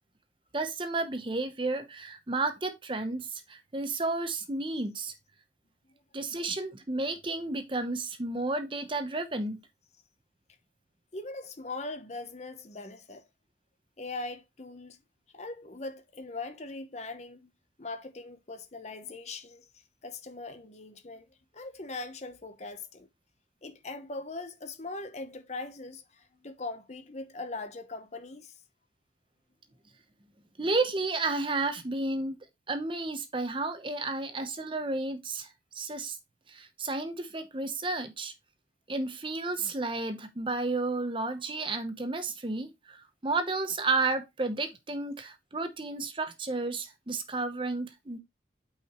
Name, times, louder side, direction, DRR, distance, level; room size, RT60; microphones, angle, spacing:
voice 1, 0.5-5.1 6.1-9.6 30.6-32.4 32.7-35.5 35.7-36.2 36.5-38.3 38.9-48.2, right 3 dB, 30° right, 0.9 m, -32 dB
voice 2, 11.1-13.2 14.0-15.0 15.3-17.5 17.8-19.7 20.0-23.1 23.6-28.5, left 3 dB, 40° left, 0.9 m, -40 dB
8.6 x 4.9 x 3.0 m
head